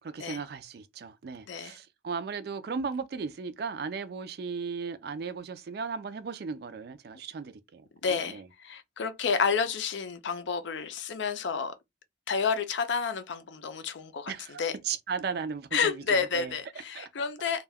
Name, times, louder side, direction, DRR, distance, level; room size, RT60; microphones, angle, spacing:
voice 1, 0.0-8.4 14.3-16.5 16.9-17.3, right 5 dB, 55° right, 0.4 m, -36 dB
voice 2, 8.0-11.8 12.3-14.3 14.6-14.8 15.7-17.6, left 5 dB, 70° left, 0.4 m, -30 dB
2.2 x 2.2 x 3.3 m
head